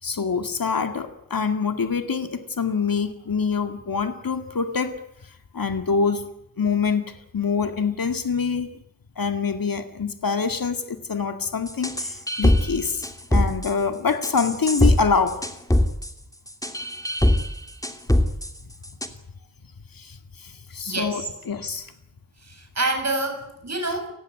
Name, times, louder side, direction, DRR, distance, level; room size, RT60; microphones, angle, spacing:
voice 1, 0.0-5.0 5.5-6.2 6.6-8.7 9.2-13.0 13.3-15.4 19.9-21.9, left 5 dB, 90° left, 7 dB, 2.2 m, -25 dB
sound 1, 11.7-12.7 13.0-13.7 14.2-15.0 15.3-16.1 16.5-17.5 17.8-18.5 18.8-19.1, left 1 dB, 10° left, 2.7 m, -21 dB
voice 2, 20.9-21.3 22.4-24.1, right 2 dB, 50° right, 5 dB, 7.2 m, -27 dB
29.5 x 16.0 x 9.4 m, 0.79 s
wide cardioid pair, 75°, 34 cm